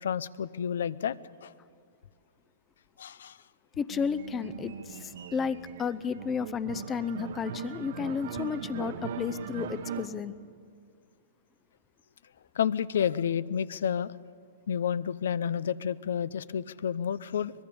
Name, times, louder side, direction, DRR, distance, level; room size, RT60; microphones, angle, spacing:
voice 1, 0.0-1.2 1.4-1.5 3.0-3.4 12.6-14.1 14.7-17.5, left 8 dB, 80° left, 18 dB, 0.6 m, -30 dB
voice 2, 3.8-10.3, left 6 dB, 15° left, 16 dB, 0.6 m, -32 dB
sound 1, 3.9-10.1, right 8 dB, 65° right, 1.3 m, -40 dB
24.0 x 19.5 x 7.0 m, 2.1 s
hypercardioid pair, 150°, 0 cm